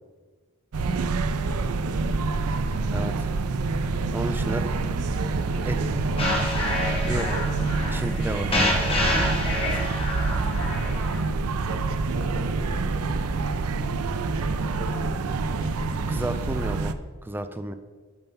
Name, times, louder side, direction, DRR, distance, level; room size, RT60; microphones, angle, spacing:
sound 1, 0.7-16.9, right 3 dB, 90° right, 0.5 m, -27 dB
voice 1, 1.6-2.2 4.0-4.7 5.1-7.7 10.4-10.8 11.3-13.3 14.1-16.3, right 2 dB, 65° right, 4 dB, 1.2 m, -41 dB
voice 2, 2.9-3.3 4.1-4.7 5.7-5.8 7.1-7.5 7.9-8.5 16.1-17.0 17.2-17.7, right 1 dB, 10° right, 9 dB, 0.4 m, -31 dB
sound 2, 6.2-11.2, left 1 dB, 25° left, 1.8 m, -27 dB
8.9 x 5.7 x 5.6 m, 1.4 s
head